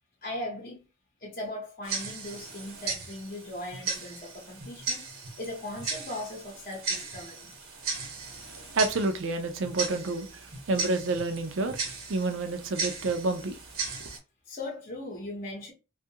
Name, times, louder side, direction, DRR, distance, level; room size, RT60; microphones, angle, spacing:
voice 1, 0.2-0.8 1.2-5.0 5.4-7.5 14.5-15.7, left 1 dB, 40° left, 0.7 m, -38 dB
Tick-tock, 1.8-14.2, right 4 dB, 85° right, 1.0 m, -37 dB
voice 2, 8.7-11.8 12.1-13.6 14.0-14.1, right 3 dB, 60° right, 0.5 m, -29 dB
2.7 x 2.4 x 2.7 m
head